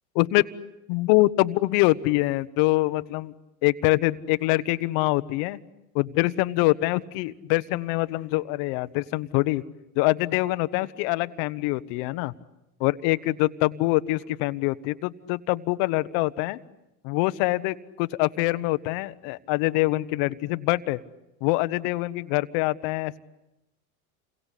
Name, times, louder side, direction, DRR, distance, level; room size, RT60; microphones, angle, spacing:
voice 1, 0.9-3.3 3.6-5.6 5.9-9.6 10.0-12.3 12.8-16.6 17.0-21.0 21.4-23.2, left 20 dB, 60° left, 14 dB, 1.1 m, -24 dB
29.5 x 23.0 x 8.4 m, 0.94 s
supercardioid pair, 105°, 43 cm